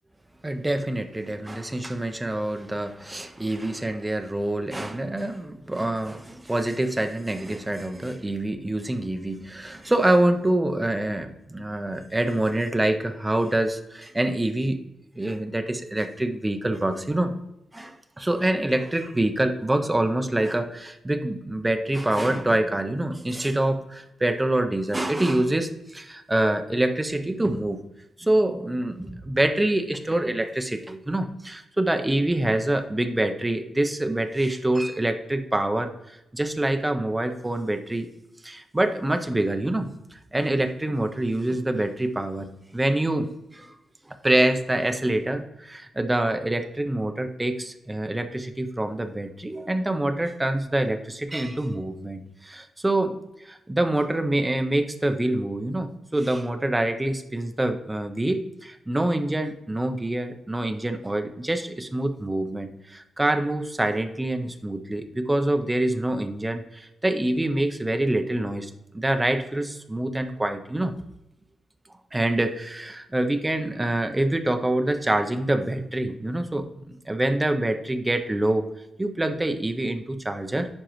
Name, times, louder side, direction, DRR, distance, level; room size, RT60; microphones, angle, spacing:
voice 1, 0.4-14.8 15.2-17.3 17.7-27.8 28.2-38.1 38.4-43.7 44.1-70.9 72.1-78.7 79.0-80.7, right 1 dB, 10° right, 8 dB, 0.5 m, -26 dB
9.6 x 5.2 x 3.0 m, 0.89 s
wide cardioid pair, 175°, 0 cm